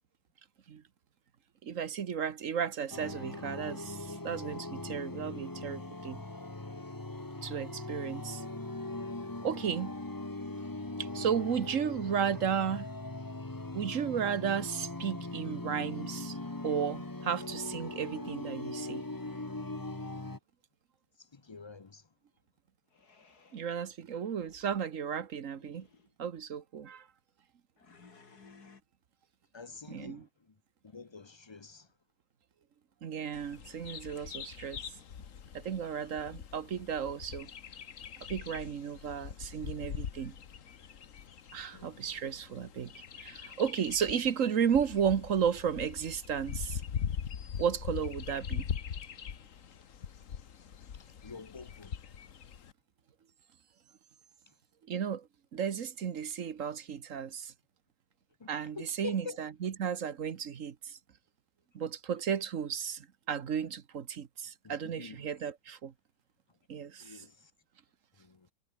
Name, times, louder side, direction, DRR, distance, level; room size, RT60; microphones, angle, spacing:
voice 1, 1.6-6.2 7.4-8.4 9.4-9.9 11.0-12.9 13.7-16.4 16.6-19.0 23.5-25.9 26.2-27.1 29.9-30.3 33.0-34.8 35.5-37.5 38.3-40.3 41.5-46.8 47.6-48.7 54.9-55.3 55.5-57.5 58.5-61.0 61.7-65.9 66.7-67.3, right 7 dB, 55° right, 1.4 m, -34 dB
sound 1, 2.9-20.4, left 2 dB, 15° left, 1.3 m, -40 dB
voice 2, 21.2-22.1 29.5-30.5 30.8-31.9 41.7-42.1 50.9-52.0 54.5-54.6 58.4-59.4 64.6-65.2 67.0-67.5 68.2-68.5, left 4 dB, 35° left, 0.4 m, -47 dB
sound 2, 22.9-23.7 24.4-24.8 25.5-26.1 27.8-28.8, left 4 dB, 85° left, 3.4 m, -59 dB
Bird vocalization bird call bird song, 33.3-52.7, left 8 dB, 55° left, 1.5 m, -42 dB
omnidirectional pair, 1.6 m